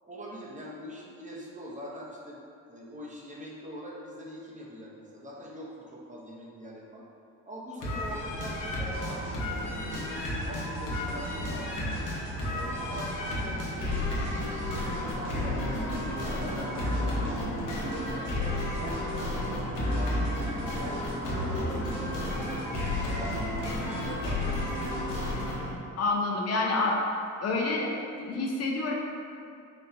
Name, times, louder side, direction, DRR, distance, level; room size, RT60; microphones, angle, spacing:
voice 1, 0.0-2.4 2.7-7.0 7.5-11.9 12.5-17.4 18.1-21.0 21.5-23.4 23.8-24.7, equal, 25° right, -4 dB, 0.7 m, -43 dB
sound 1, 7.8-25.8, left 1 dB, 80° left, 0.9 m, -32 dB
sound 2, 8.9-25.3, right 1 dB, 65° right, 1.1 m, -40 dB
voice 2, 26.0-27.0 27.4-27.9 28.2-28.9, left 3 dB, 55° left, -1 dB, 0.6 m, -28 dB
4.1 x 2.2 x 3.9 m, 2.5 s
cardioid pair, 90°, 30 cm